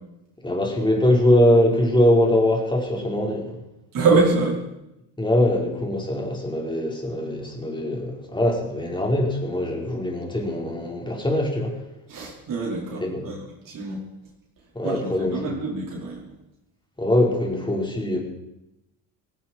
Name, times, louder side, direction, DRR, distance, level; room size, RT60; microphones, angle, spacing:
voice 1, 0.4-3.6 5.2-11.8 13.0-13.3 14.7-15.5 17.0-18.2, left 1 dB, 10° left, 0 dB, 4.7 m, -22 dB
voice 2, 3.9-4.6 12.1-13.4 13.6-14.0 14.8-16.2, right 3 dB, 50° right, -4 dB, 4.9 m, -24 dB
17.5 x 16.5 x 4.6 m, 0.91 s
supercardioid pair, 90°, 42 cm